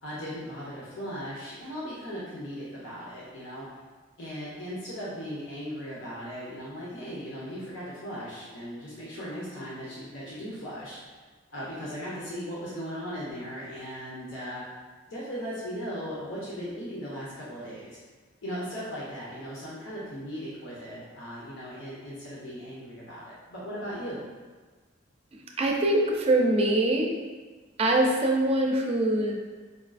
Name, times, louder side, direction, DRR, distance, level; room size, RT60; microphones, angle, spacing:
voice 1, 0.0-3.7 4.2-11.0 11.5-14.6 15.1-18.0 18.4-24.2, equal, 90° left, -7 dB, 0.8 m, -38 dB
voice 2, 25.6-27.1 27.8-29.3, right 1 dB, 35° right, 0 dB, 0.4 m, -23 dB
5.0 x 2.4 x 2.4 m, 1.4 s
head